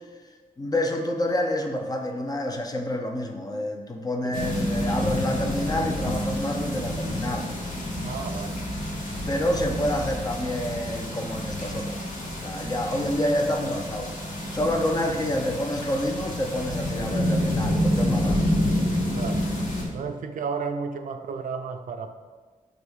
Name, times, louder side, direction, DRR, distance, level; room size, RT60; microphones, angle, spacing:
voice 1, 0.6-7.5 9.2-12.0 12.4-14.1 14.5-18.6, left 1 dB, 25° left, 3 dB, 0.6 m, -28 dB
sound 1, 4.3-19.9, left 1 dB, 85° left, 1.5 m, -28 dB
voice 2, 8.0-8.6 19.1-19.5 19.8-22.1, right 5 dB, 75° right, 7 dB, 0.5 m, -33 dB
4.9 x 3.5 x 5.4 m, 1.3 s
wide cardioid pair, 130°, 14 cm